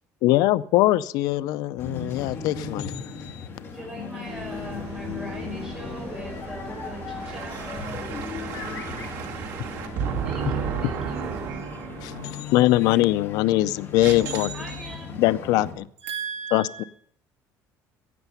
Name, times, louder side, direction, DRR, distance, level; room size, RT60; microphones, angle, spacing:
voice 1, 0.2-3.5 12.0-14.5 15.2-15.9 16.5-16.8, left 16 dB, 75° left, 0.5 m, -22 dB
sound 1, 1.8-15.7, left 6 dB, 35° left, 2.2 m, -37 dB
voice 2, 3.6-9.1 10.2-11.7 14.5-15.2, equal, 10° right, 4.6 m, -41 dB
sound 2, 4.2-11.5, right 3 dB, 30° right, 6.6 m, -39 dB
voice 3, 7.2-12.5 14.0-14.9 16.0-16.9, right 7 dB, 70° right, 2.5 m, -33 dB
15.5 x 9.0 x 6.9 m
cardioid pair, 175°, 7 cm